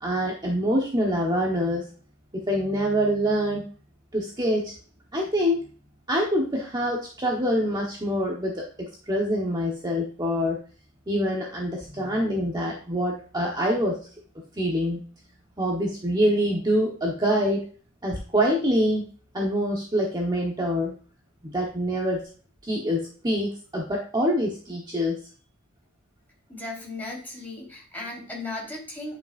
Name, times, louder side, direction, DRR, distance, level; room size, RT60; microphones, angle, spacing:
voice 1, 0.0-1.8 2.3-3.6 4.1-4.7 5.1-5.6 6.1-10.6 11.1-14.1 14.6-15.0 15.6-17.7 18.0-19.0 19.3-20.9 21.4-22.3 22.6-25.2, equal, 20° right, -2 dB, 1.2 m, -25 dB
voice 2, 26.5-29.2, left 2 dB, 10° left, -5 dB, 4.1 m, -36 dB
10.0 x 5.8 x 2.6 m, 0.40 s
head